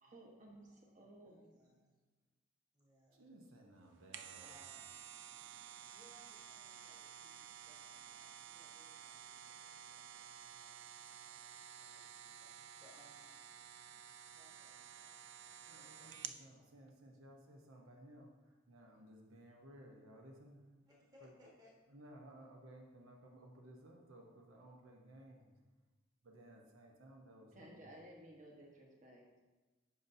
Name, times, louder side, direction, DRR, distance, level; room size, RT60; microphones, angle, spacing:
voice 1, 0.0-1.6 27.5-29.4, right 1 dB, 35° right, -1 dB, 1.1 m, -57 dB
voice 2, 0.6-1.9 2.7-3.3 4.4-5.0 5.9-11.5 11.8-13.5 14.3-16.9 20.9-21.7, left 1 dB, 20° right, -4 dB, 1.3 m, -68 dB
voice 3, 3.1-4.6 15.7-20.8 21.2-21.4 21.9-25.6 26.2-27.9, right 1 dB, 80° right, 1 dB, 0.9 m, -58 dB
sound 1, 3.8-16.4 16.9-17.0, right 9 dB, 60° right, 0.3 m, -53 dB
9.5 x 5.5 x 2.7 m, 1.2 s
head